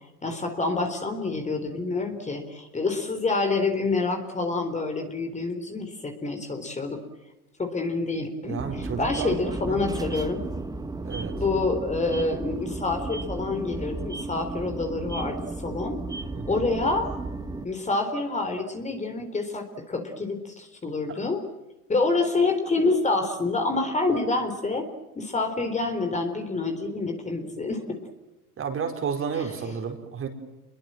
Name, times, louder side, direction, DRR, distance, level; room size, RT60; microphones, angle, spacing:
voice 1, 0.2-7.0 7.6-10.4 11.3-16.0 16.5-17.1 17.6-21.4 21.9-24.9 25.2-28.0 29.3-29.5, left 3 dB, 15° left, 5 dB, 3.9 m, -27 dB
voice 2, 8.5-10.0 11.0-11.3 16.3-16.6 21.1-21.2 28.6-30.3, right 6 dB, 30° right, 5 dB, 4.9 m, -32 dB
sound 1, 8.6-17.7, right 2 dB, 10° right, 1.5 m, -34 dB
28.5 x 22.5 x 7.7 m, 1.0 s
hypercardioid pair, 95°, 44 cm